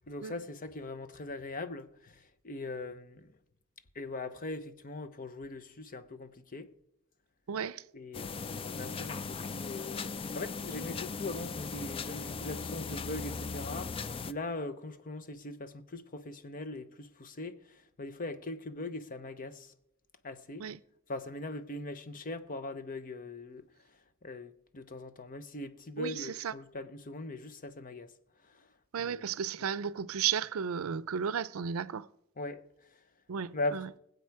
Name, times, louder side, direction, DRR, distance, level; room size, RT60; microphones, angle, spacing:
voice 1, 0.1-3.4 3.9-6.7 7.9-19.7 20.2-20.7 21.1-23.7 24.2-28.1 28.4-28.7 29.0-29.3 29.6-29.7 32.4-32.6 33.5-33.9, left 2 dB, 40° left, 0.8 m, -41 dB
voice 2, 7.5-7.8 20.6-20.8 26.0-26.5 28.9-32.1 33.3-33.9, right 7 dB, 85° right, 0.5 m, -34 dB
sound 1, 8.1-14.3, left 4 dB, 25° left, 0.4 m, -38 dB
20.0 x 8.0 x 4.7 m
head